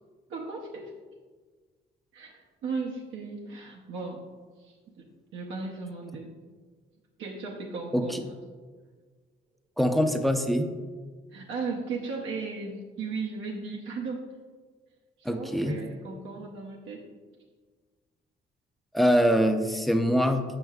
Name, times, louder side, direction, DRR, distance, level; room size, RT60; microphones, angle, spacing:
voice 1, 0.3-0.9 2.1-4.2 4.6-5.1 5.3-6.3 7.2-8.3 11.3-14.3 15.2-17.0, right 4 dB, 80° right, -2 dB, 0.7 m, -36 dB
voice 2, 9.8-10.7 15.2-15.7 18.9-20.4, equal, ahead, 6 dB, 0.5 m, -24 dB
7.7 x 5.5 x 2.3 m, 1.5 s
cardioid pair, 90°, 20 cm